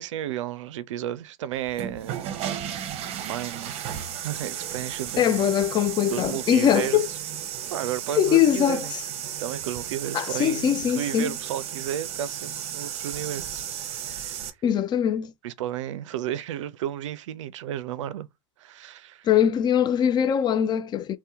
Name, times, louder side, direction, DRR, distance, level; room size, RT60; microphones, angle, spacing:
voice 1, 0.0-2.5 3.1-5.4 6.1-7.1 7.7-8.9 9.4-14.5 15.4-18.3 18.6-19.3, right 11 dB, 70° right, 0.4 m, -33 dB
sound 1, 1.6-14.5, right 10 dB, 40° right, 0.7 m, -34 dB
voice 2, 5.2-7.1 8.1-9.0 10.1-11.3 14.6-15.3 19.3-21.2, left 9 dB, 25° left, 0.3 m, -22 dB
2.8 x 2.2 x 3.4 m
hypercardioid pair, 100°, 16 cm